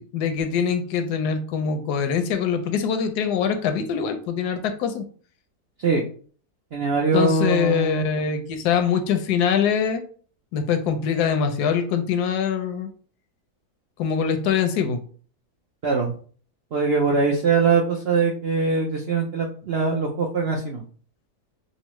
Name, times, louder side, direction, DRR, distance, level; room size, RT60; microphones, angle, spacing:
voice 1, 0.0-5.1 7.1-10.0 10.5-12.9 14.0-15.0, left 7 dB, 80° left, 7 dB, 1.1 m, -23 dB
voice 2, 6.7-8.0 15.8-16.1 16.7-20.8, right 4 dB, 70° right, -1 dB, 0.6 m, -22 dB
5.3 x 2.0 x 3.0 m, 0.43 s
omnidirectional pair, 1.7 m